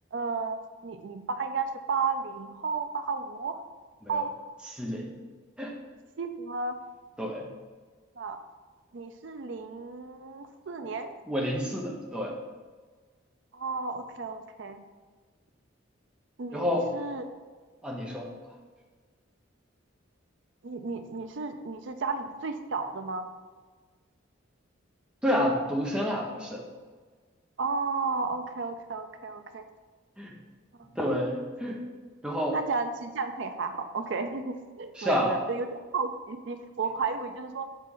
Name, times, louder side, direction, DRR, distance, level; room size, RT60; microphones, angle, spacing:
voice 1, 0.1-3.6 4.1-4.3 6.2-6.8 8.2-8.4 8.9-11.1 13.5-14.8 16.4-17.3 20.6-23.2 27.6-29.7 32.5-37.7, right 4 dB, 65° right, 7 dB, 0.5 m, -33 dB
voice 2, 4.7-5.1 5.6-5.7 7.2-7.4 10.8-10.9 11.3-12.4 16.5-16.9 17.8-18.3 25.2-26.6 30.2-30.3 31.0-31.8 32.2-32.6 35.0-35.4, equal, 5° right, -2 dB, 0.8 m, -29 dB
6.2 x 4.1 x 3.8 m, 1.5 s
head